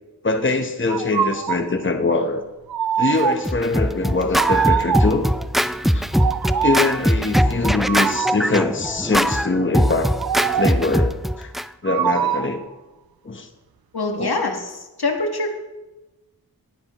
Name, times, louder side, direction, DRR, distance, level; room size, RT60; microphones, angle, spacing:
voice 1, 0.2-2.4 3.0-5.3 5.8-6.0 6.6-10.1 10.5-11.5 11.8-12.6 13.2-13.5 14.2-14.3, left 3 dB, 30° left, 6 dB, 0.9 m, -23 dB
sound 1, 0.9-1.7 2.7-3.6 4.3-5.3 6.1-7.0 7.9-8.6 10.2-10.9 11.8-12.6, right 9 dB, 70° right, 0.5 m, -23 dB
Scratching (performance technique), 3.2-11.6, equal, ahead, 0.3 m, -21 dB
voice 2, 13.9-15.5, left 2 dB, 80° left, 3 dB, 1.5 m, -24 dB
19.0 x 10.5 x 3.0 m, 1.1 s
wide cardioid pair, 60°, 37 cm